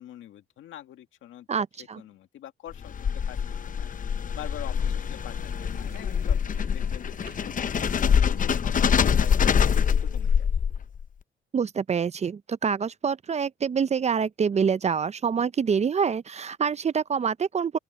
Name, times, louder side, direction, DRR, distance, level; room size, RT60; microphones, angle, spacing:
voice 1, 0.0-1.5 1.8-3.4 3.8-3.9 4.3-7.9 8.3-10.5, left 12 dB, 80° left, 2.0 m, -45 dB
voice 2, 1.5-2.0 11.5-17.8, right 6 dB, 35° right, 0.5 m, -26 dB
sound 1, 2.7-11.0, left 7 dB, 40° left, 0.8 m, -25 dB
sound 2, 5.3-10.4, right 7 dB, 50° right, 2.5 m, -50 dB
open air
cardioid pair, 90°, 20 cm